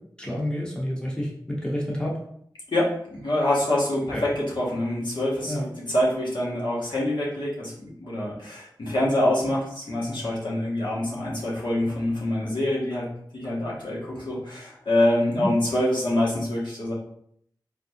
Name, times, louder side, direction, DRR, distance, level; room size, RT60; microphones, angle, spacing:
voice 1, 0.2-2.2 4.1-4.2 5.5-5.7 15.4-15.5, equal, 10° left, -4 dB, 0.8 m, -29 dB
voice 2, 2.7-13.1 13.3-16.9, left 1 dB, 80° left, -6 dB, 1.1 m, -25 dB
3.4 x 2.4 x 2.7 m, 0.69 s
wide cardioid pair, 75°, 8 cm